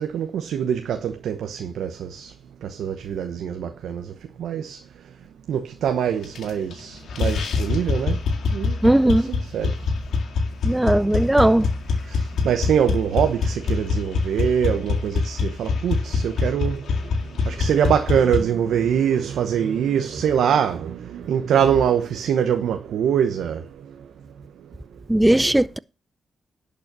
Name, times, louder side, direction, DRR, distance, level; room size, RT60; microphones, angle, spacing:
voice 1, 0.0-2.3 2.6-4.1 4.4-4.8 5.5-8.2 8.5-8.8 9.1-9.7 12.1-16.8 17.5-23.6, right 8 dB, 80° right, 0.9 m, -23 dB
sound 1, 6.2-6.8 7.1-18.4, left 4 dB, 75° left, 2.0 m, -24 dB
voice 2, 8.8-9.3 10.6-11.7 25.1-25.8, right 1 dB, 10° right, 0.5 m, -17 dB
11.0 x 5.4 x 6.1 m
cardioid pair, 65°, 0 cm